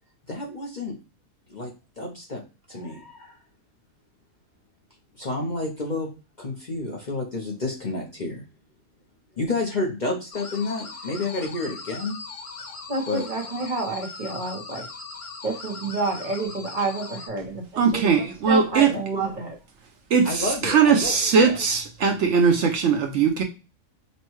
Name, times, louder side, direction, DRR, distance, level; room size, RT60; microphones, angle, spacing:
voice 1, 0.3-1.0 1.5-2.4 2.7-3.4 5.2-6.1 6.4-8.4 9.4-12.2 13.1-13.3 18.9-19.0 20.2-21.6, left 2 dB, 40° left, 0.7 m, -30 dB
sound 1, 10.3-17.3, left 4 dB, 65° left, 1.4 m, -39 dB
voice 2, 12.9-14.8 15.4-18.0 18.4-19.6, right 3 dB, 40° right, 0.9 m, -29 dB
voice 3, 17.8-18.9 20.1-23.4, right 6 dB, 65° right, 0.9 m, -20 dB
5.4 x 2.2 x 3.0 m
omnidirectional pair, 1.4 m